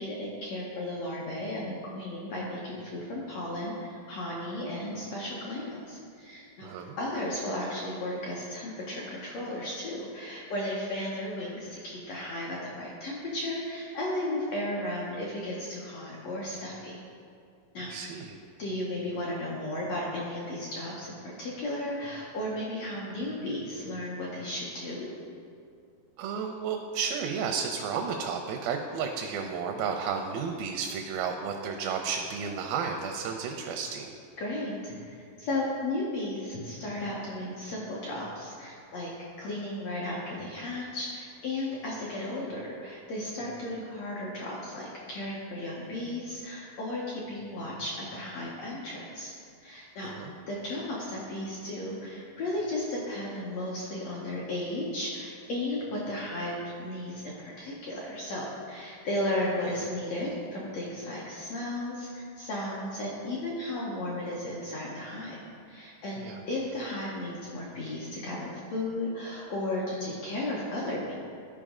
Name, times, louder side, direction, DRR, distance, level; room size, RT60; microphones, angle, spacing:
voice 1, 0.0-6.7 7.0-17.0 17.7-17.9 18.6-25.1 34.4-39.1 39.4-49.3 49.6-50.1 50.5-65.4 65.7-66.2 66.5-71.2, left 1 dB, 75° left, -4 dB, 1.5 m, -34 dB
voice 2, 6.6-7.0 17.9-18.4 26.2-34.1 50.0-50.3 66.2-66.4, right 6 dB, 85° right, 3 dB, 2.4 m, -32 dB
12.0 x 5.1 x 3.6 m, 2.4 s
omnidirectional pair, 4.1 m